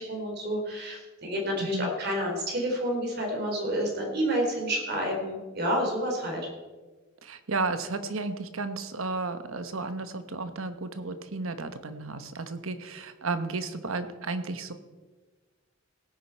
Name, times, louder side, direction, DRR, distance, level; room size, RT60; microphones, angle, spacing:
voice 1, 0.0-6.4, equal, 50° right, 0 dB, 3.4 m, -29 dB
voice 2, 1.6-1.9 7.2-14.7, right 3 dB, 75° right, 10 dB, 1.1 m, -33 dB
17.0 x 9.6 x 4.5 m, 1.3 s
head